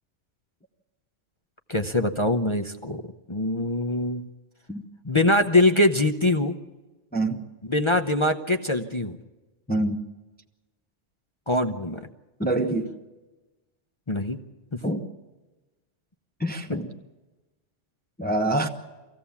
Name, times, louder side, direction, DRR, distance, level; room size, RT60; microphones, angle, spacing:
voice 1, 1.7-3.0 3.3-4.3 5.0-6.6 7.7-9.2 11.5-12.1 14.1-14.4 14.7-14.8, left 1 dB, 30° left, 0.7 m, -23 dB
voice 2, 9.7-10.0 12.4-12.9 14.8-15.0 16.4-16.9 18.2-18.7, right 1 dB, 10° left, 0.9 m, -25 dB
24.0 x 16.5 x 7.2 m
omnidirectional pair, 1.3 m